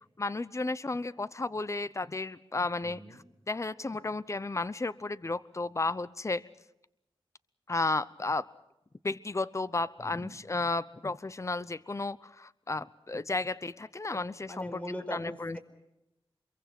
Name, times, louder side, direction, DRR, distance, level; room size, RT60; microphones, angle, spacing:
voice 1, 0.2-6.4 7.7-8.5 9.0-14.8 15.1-15.6, left 3 dB, 30° left, 17 dB, 0.8 m, -33 dB
voice 2, 2.8-3.2 10.0-10.4 14.1-14.2 14.5-15.6, equal, 15° left, 8 dB, 4.6 m, -41 dB
26.5 x 23.0 x 6.0 m, 0.87 s
wide cardioid pair, 75°, 10 cm